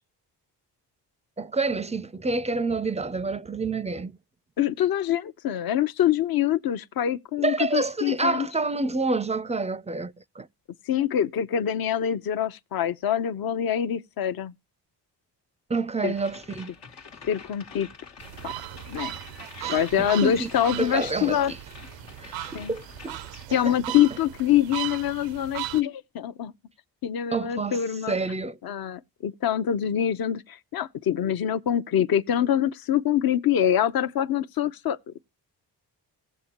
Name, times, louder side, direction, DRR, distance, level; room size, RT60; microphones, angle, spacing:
voice 1, 1.4-4.2 7.4-10.5 15.7-16.7 19.6-20.5 20.8-21.6 22.2-23.2 23.5-24.0 27.3-28.6, right 3 dB, 15° right, 0.5 m, -28 dB
voice 2, 4.6-8.5 10.9-14.5 16.0-16.1 17.2-17.9 18.4-18.5 18.9-19.2 19.7-21.5 22.5-22.7 23.5-26.5 27.0-28.2 28.6-35.2, left 10 dB, 55° left, 0.7 m, -25 dB
sound 1, 16.1-23.5, left 5 dB, 75° left, 1.4 m, -47 dB
sound 2, 18.2-25.8, right 14 dB, 90° right, 0.5 m, -37 dB
17.5 x 7.2 x 2.9 m
supercardioid pair, 60°, 43 cm